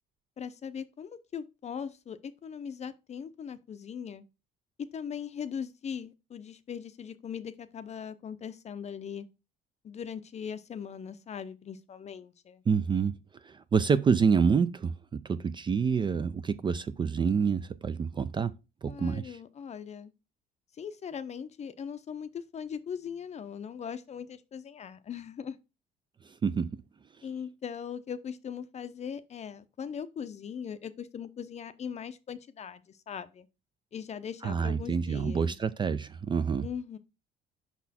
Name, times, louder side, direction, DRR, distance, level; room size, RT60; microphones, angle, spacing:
voice 1, 0.4-4.2 4.8-9.3 9.8-12.6 18.9-20.1 20.7-25.6 27.2-33.5 33.9-35.6 36.6-37.0, left 7 dB, 35° left, 0.6 m, -40 dB
voice 2, 12.7-13.1 13.4-18.5 18.8-19.3 26.4-26.8 34.4-36.7, right 6 dB, 25° right, 0.3 m, -27 dB
5.6 x 4.1 x 4.2 m
cardioid pair, 110°, 19 cm